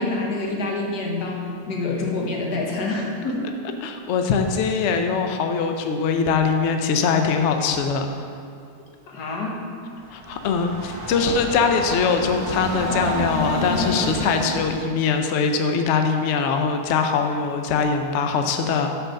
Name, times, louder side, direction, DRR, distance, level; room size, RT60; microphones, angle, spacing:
voice 1, 0.0-3.5 9.1-9.7, left 2 dB, 90° left, -1 dB, 1.6 m, -27 dB
voice 2, 3.8-8.1 10.1-18.9, left 5 dB, 65° left, 5 dB, 0.7 m, -22 dB
Train, 10.0-14.9, right 1 dB, 35° right, 0.7 m, -29 dB
6.3 x 4.8 x 6.3 m, 2.4 s
omnidirectional pair, 1.7 m